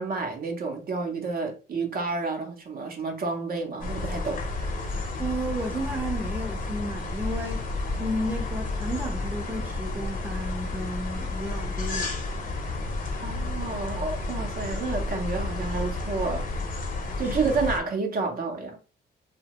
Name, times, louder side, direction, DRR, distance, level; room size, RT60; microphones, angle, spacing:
voice 1, 0.0-4.9 13.2-16.5 17.2-18.8, right 4 dB, 50° right, 0.7 m, -30 dB
sound 1, 3.8-17.8, left 2 dB, 45° left, 0.7 m, -31 dB
voice 2, 5.2-7.7 7.9-12.1 17.2-17.5, right 1 dB, 10° right, 0.6 m, -33 dB
2.7 x 2.1 x 2.8 m
cardioid pair, 90°, 20 cm